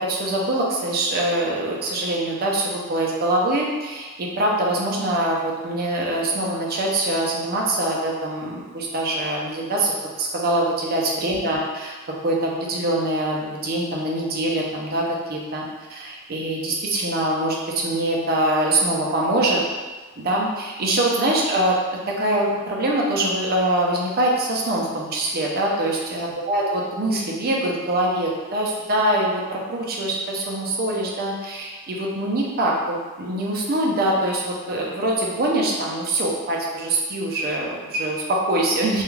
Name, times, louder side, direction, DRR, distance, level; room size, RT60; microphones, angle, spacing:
voice 1, 0.0-11.9 12.2-15.0 15.3-15.6 15.9-19.6 20.2-21.7 22.1-39.0, right 1 dB, 45° right, -2 dB, 0.5 m, -23 dB
2.3 x 2.2 x 3.1 m, 1.3 s
head